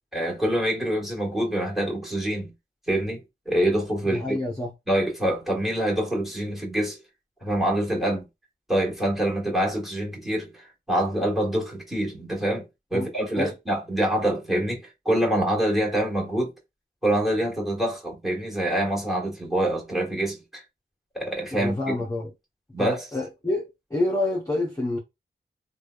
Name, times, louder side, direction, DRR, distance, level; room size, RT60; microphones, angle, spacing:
voice 1, 0.1-2.5 2.9-4.4 4.9-7.0 7.4-8.3 8.7-12.6 12.9-16.5 17.0-20.6 21.1-21.9 22.7-23.0, right 1 dB, ahead, 1.5 m, -25 dB
voice 2, 4.0-4.7 12.9-13.1 13.3-13.5 21.5-22.3 22.8-25.0, left 2 dB, 15° left, 0.7 m, -28 dB
3.1 x 2.2 x 2.4 m
cardioid pair, 60°, 20 cm